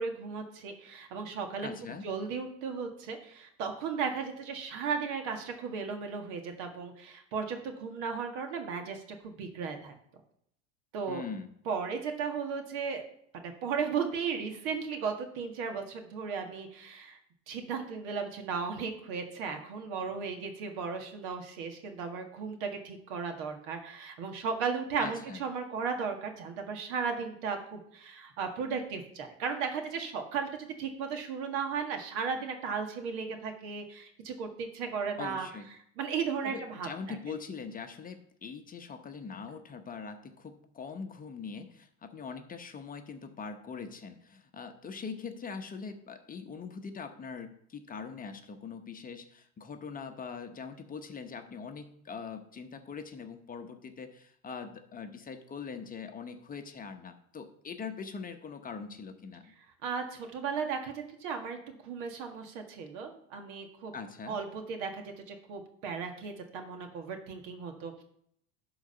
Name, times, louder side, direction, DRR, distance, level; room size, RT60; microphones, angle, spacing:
voice 1, 0.0-1.7 2.0-9.9 10.9-11.2 11.7-13.0 13.3-17.2 17.5-35.5 36.0-37.2 59.8-63.9 64.3-68.0, right 5 dB, 70° right, 4 dB, 1.8 m, -35 dB
voice 2, 1.6-2.1 11.1-11.5 25.0-25.4 35.2-35.7 36.4-59.5 63.9-64.4, left 5 dB, 25° left, 6 dB, 0.9 m, -42 dB
11.5 x 4.0 x 5.6 m, 0.69 s
supercardioid pair, 110°, 36 cm